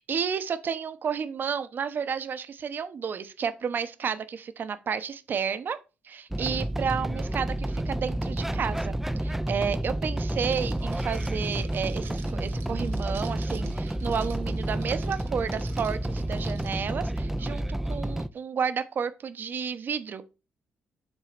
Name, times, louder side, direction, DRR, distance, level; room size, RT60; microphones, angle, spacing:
voice 1, 0.1-5.8 6.0-20.2, right 7 dB, 50° right, 0.9 m, -31 dB
sound 1, 6.3-18.3, right 1 dB, 5° right, 0.5 m, -30 dB
Crackle, 10.5-16.7, right 7 dB, 85° right, 2.2 m, -50 dB
6.1 x 3.7 x 5.9 m
cardioid pair, 105°, 4 cm